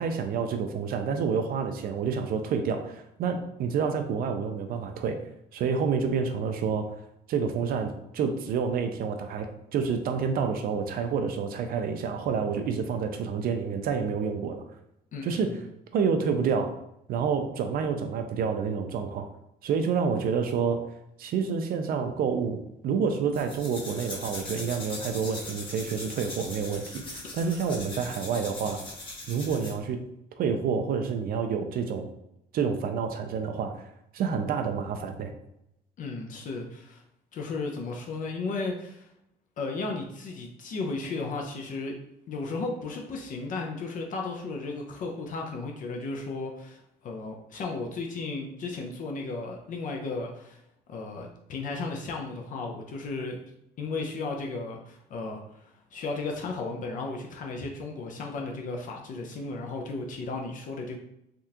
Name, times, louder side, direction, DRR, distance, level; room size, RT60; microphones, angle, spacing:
voice 1, 0.0-5.2 5.5-6.9 7.3-14.6 15.2-15.6 15.9-16.7 17.1-19.3 19.6-20.8 21.2-28.8 29.3-30.0 30.4-32.1 32.5-33.7 34.1-35.3, right 6 dB, 60° right, 6 dB, 0.4 m, -28 dB
voice 2, 15.1-15.5 36.0-37.0 37.3-39.1 39.6-41.9 42.3-50.6 50.9-53.4 53.8-55.4 55.9-61.0, left 3 dB, 50° left, 1 dB, 0.5 m, -34 dB
sound 1, 23.3-29.8, left 2 dB, 30° left, 1.4 m, -40 dB
3.5 x 2.4 x 2.8 m, 0.81 s
cardioid pair, 110°, 17 cm